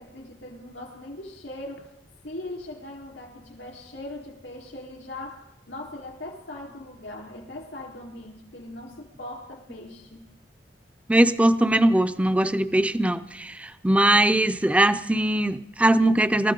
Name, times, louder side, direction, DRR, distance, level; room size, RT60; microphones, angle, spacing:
voice 1, 0.0-1.9 2.2-10.2, left 1 dB, 90° left, 1 dB, 3.9 m, -40 dB
voice 2, 11.1-16.5, right 1 dB, 10° right, 12 dB, 0.5 m, -21 dB
26.0 x 14.0 x 3.8 m, 0.85 s
head